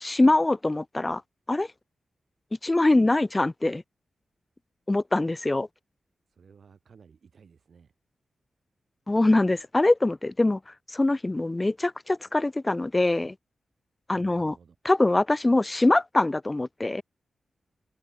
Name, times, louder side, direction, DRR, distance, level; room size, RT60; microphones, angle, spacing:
voice 1, 0.0-1.2 1.5-1.7 2.6-3.8 4.9-5.7 9.1-10.6 10.9-13.3 14.1-14.5 14.8-17.0, left 2 dB, 25° left, 1.1 m, -23 dB
voice 2, 6.3-7.9 14.1-14.8, right 6 dB, 70° right, 7.7 m, -55 dB
open air
cardioid pair, 50°, 0 cm